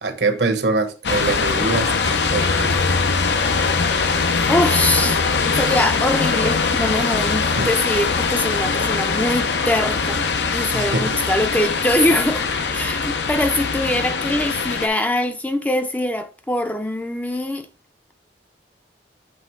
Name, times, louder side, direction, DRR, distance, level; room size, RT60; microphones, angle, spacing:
voice 1, 0.0-2.8 7.6-7.7 10.7-11.2, right 3 dB, 70° right, 1.1 m, -24 dB
sound 1, 1.0-14.9, left 4 dB, 80° left, 0.7 m, -21 dB
voice 2, 4.5-5.2 5.5-10.2 10.5-17.7, left 1 dB, 10° left, 0.5 m, -23 dB
7.7 x 3.5 x 4.6 m
head